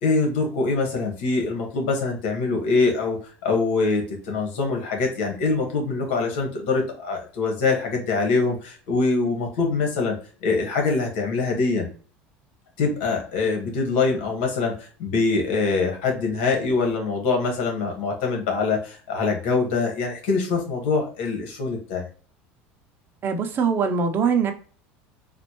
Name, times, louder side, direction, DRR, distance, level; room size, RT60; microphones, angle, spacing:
voice 1, 0.0-10.1 10.4-11.9 12.8-22.1, left 4 dB, 75° left, 2 dB, 1.6 m, -24 dB
voice 2, 23.2-24.5, right 6 dB, 40° right, 6 dB, 0.7 m, -22 dB
4.2 x 2.6 x 3.0 m, 0.40 s
supercardioid pair, 110°, 6 cm